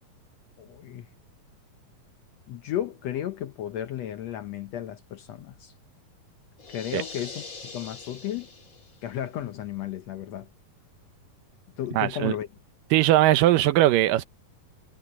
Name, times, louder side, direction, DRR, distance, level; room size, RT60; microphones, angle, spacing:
voice 1, 0.6-1.1 2.5-5.7 6.7-7.4 7.7-8.5 9.0-10.5 11.8-12.5, left 11 dB, 70° left, 1.6 m, -33 dB
sound 1, 6.6-9.1, left 4 dB, 30° left, 2.1 m, -42 dB
voice 2, 12.0-12.3 12.9-14.2, right 14 dB, 80° right, 2.4 m, -20 dB
omnidirectional pair, 3.9 m